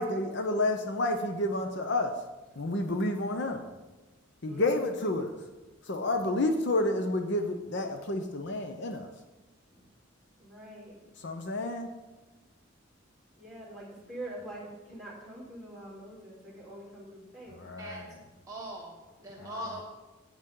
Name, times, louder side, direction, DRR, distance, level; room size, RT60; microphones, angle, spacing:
voice 1, 0.0-2.2 2.6-3.6 4.4-5.4 5.8-9.1 11.2-11.9 17.5-18.2 19.4-19.6, left 2 dB, 60° left, 6 dB, 0.7 m, -30 dB
voice 2, 4.5-5.0 9.7-9.8 10.4-11.0 13.4-17.7 19.2-19.6, right 1 dB, ahead, -5 dB, 3.6 m, -45 dB
voice 3, 18.5-19.8, equal, 15° right, -3 dB, 1.1 m, -40 dB
9.8 x 8.9 x 3.8 m, 1.2 s
head